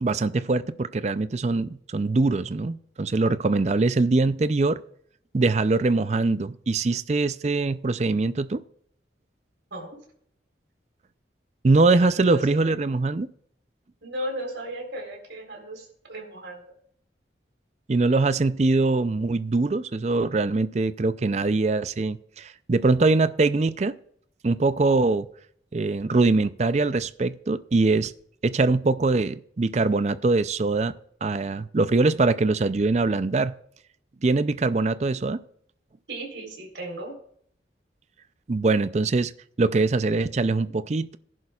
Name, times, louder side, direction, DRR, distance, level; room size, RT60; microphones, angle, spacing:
voice 1, 0.0-4.8 5.3-8.6 11.6-13.3 17.9-24.0 24.4-25.3 25.7-28.1 28.4-30.9 31.2-33.5 34.2-35.4 38.5-39.3 39.6-41.2, right 3 dB, 35° right, 14 dB, 0.4 m, -23 dB
voice 2, 11.9-12.4 14.0-16.6 36.1-37.2, right 1 dB, 80° right, 1 dB, 3.9 m, -35 dB
17.0 x 11.0 x 2.4 m, 0.65 s
head